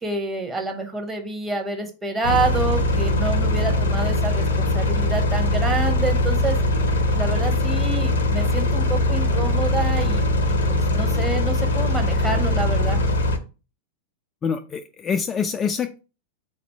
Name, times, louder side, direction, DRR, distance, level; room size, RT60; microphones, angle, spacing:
voice 1, 0.0-6.6 7.1-13.0, right 2 dB, 10° right, 2 dB, 1.0 m, -28 dB
sound 1, 2.2-13.4, left 1 dB, 65° left, 0.6 m, -21 dB
voice 2, 14.4-16.0, left 6 dB, 25° left, 7 dB, 0.3 m, -25 dB
4.0 x 2.5 x 4.5 m, 0.33 s
figure-of-eight pair, 90°, 0 cm